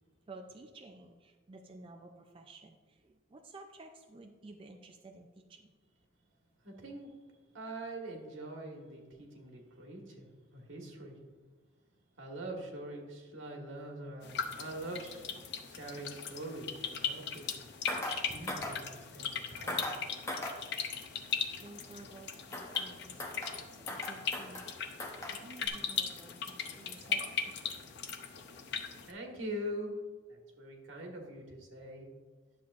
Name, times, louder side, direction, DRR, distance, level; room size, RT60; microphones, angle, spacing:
voice 1, 0.3-5.7 21.6-24.7 25.3-27.4 27.6-27.7, right 2 dB, 25° right, 4 dB, 0.4 m, -53 dB
voice 2, 6.6-7.1 7.5-11.1 12.2-15.2 15.8-17.5 18.3-20.0 29.1-29.9 30.3-32.1, right 1 dB, 75° right, 0 dB, 1.6 m, -43 dB
sound 1, 14.2-29.1, left 6 dB, 60° left, 0.6 m, -39 dB
sound 2, 17.9-18.2 18.5-18.8 19.7-20.0 20.3-20.6 22.5-22.9 23.2-23.6 23.9-24.7 25.0-25.4 25.7-25.8, left 1 dB, 15° left, 0.8 m, -39 dB
10.5 x 7.1 x 2.5 m, 1.4 s
head